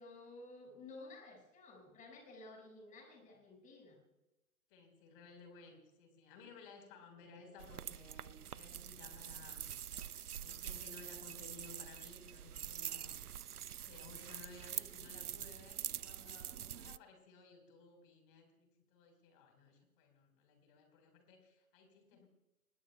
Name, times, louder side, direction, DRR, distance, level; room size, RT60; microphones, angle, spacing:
voice 1, 0.0-4.0 22.1-22.3, left 2 dB, 15° left, 2 dB, 5.5 m, -54 dB
voice 2, 4.7-10.1 10.4-13.2 13.7-22.3, left 4 dB, 35° left, 5 dB, 4.5 m, -58 dB
sound 1, 7.6-17.0, right 10 dB, 80° right, 0.6 m, -45 dB
26.0 x 21.0 x 2.3 m, 0.99 s
figure-of-eight pair, 120°, 44 cm